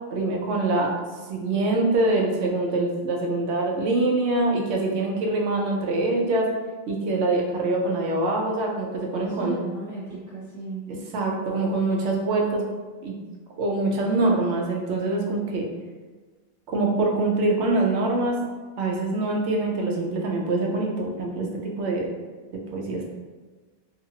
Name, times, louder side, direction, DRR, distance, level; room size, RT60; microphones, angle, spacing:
voice 1, 0.1-0.9 1.3-6.5 6.9-9.6 10.9-12.7 13.0-13.2 13.6-15.7 16.7-18.4 18.8-22.1 22.5-23.0, right 2 dB, 85° right, 0 dB, 0.9 m, -24 dB
voice 2, 9.2-10.9, right 4 dB, 25° right, -11 dB, 0.4 m, -35 dB
2.6 x 2.4 x 2.7 m, 1.3 s
omnidirectional pair, 1.1 m